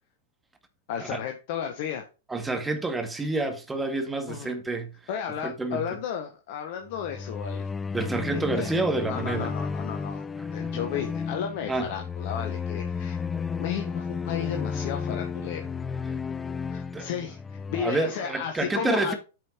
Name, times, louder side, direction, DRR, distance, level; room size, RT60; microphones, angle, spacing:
voice 1, 0.9-2.0 4.3-4.5 5.1-7.7 8.3-8.7 9.1-10.2 10.5-13.2 13.6-15.7 16.7-19.1, left 8 dB, 50° left, 1.4 m, -33 dB
voice 2, 2.3-5.0 5.4-5.8 7.9-9.5 10.6-10.7 11.7-11.9 16.9-17.1 17.8-19.1, right 3 dB, 10° right, 2.0 m, -28 dB
sound 1, 6.9-17.8, left 5 dB, 15° left, 0.5 m, -33 dB
9.2 x 5.6 x 4.6 m
figure-of-eight pair, 100°, 0 cm